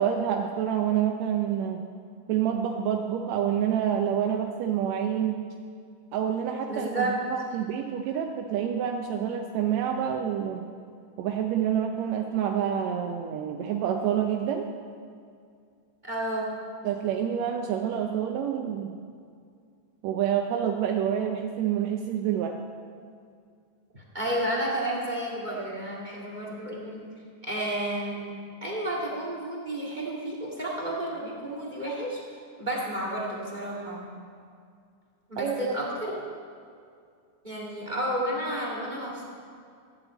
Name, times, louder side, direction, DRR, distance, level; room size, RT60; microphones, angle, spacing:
voice 1, 0.0-1.8 2.3-5.4 6.1-10.6 11.2-14.7 16.8-18.9 20.0-22.6 35.4-35.7, right 9 dB, 75° right, 3 dB, 1.7 m, -27 dB
voice 2, 6.7-7.1 16.0-16.5 23.9-27.0 27.4-28.3 28.6-32.2 32.6-34.1 35.3-36.1 37.4-39.2, right 1 dB, 20° right, -2 dB, 1.5 m, -31 dB
13.5 x 7.7 x 8.0 m, 2.3 s
omnidirectional pair, 3.8 m